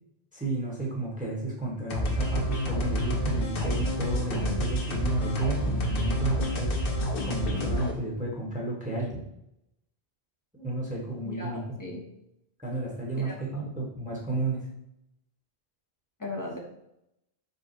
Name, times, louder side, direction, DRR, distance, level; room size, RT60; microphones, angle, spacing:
voice 1, 0.3-6.8 7.2-9.2 10.5-11.8 12.6-14.6, right 2 dB, 10° right, -4 dB, 0.9 m, -32 dB
sound 1, 1.9-7.9, equal, 65° left, 0.9 m, -28 dB
voice 2, 11.2-12.0 13.2-13.7 16.2-16.6, left 2 dB, 20° left, 0 dB, 0.7 m, -38 dB
5.2 x 2.0 x 4.4 m, 0.81 s
omnidirectional pair, 1.0 m